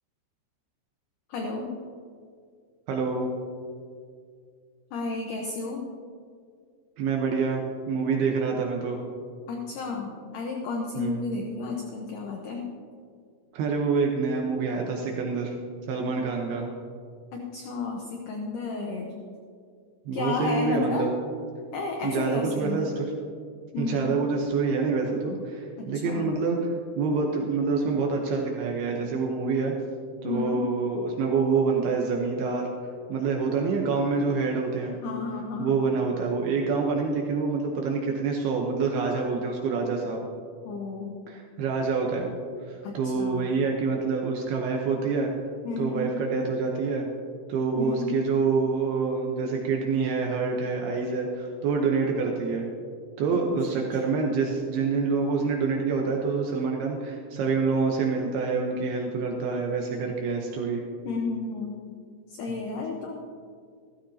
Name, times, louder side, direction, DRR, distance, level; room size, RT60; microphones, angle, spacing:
voice 1, 1.3-1.7 4.9-5.8 9.5-12.6 17.3-19.1 20.1-21.1 21.7-22.9 23.7-24.2 25.8-26.4 30.2-30.6 35.0-35.8 40.7-41.2 42.8-43.5 45.6-46.1 47.7-48.1 53.3-53.4 53.7-53.8 61.0-61.8 62.3-63.2, left 4 dB, 70° left, 1 dB, 2.2 m, -32 dB
voice 2, 2.9-3.3 7.0-9.0 11.0-11.4 13.5-15.5 15.9-16.7 20.1-21.1 22.0-23.1 23.8-26.7 27.0-29.7 30.2-32.7 33.1-35.0 35.6-40.2 41.3-42.4 42.7-45.3 45.8-47.1 47.5-52.7 53.2-60.8, right 4 dB, 75° right, 0 dB, 2.8 m, -26 dB
15.5 x 14.5 x 2.8 m, 2.2 s
omnidirectional pair, 4.8 m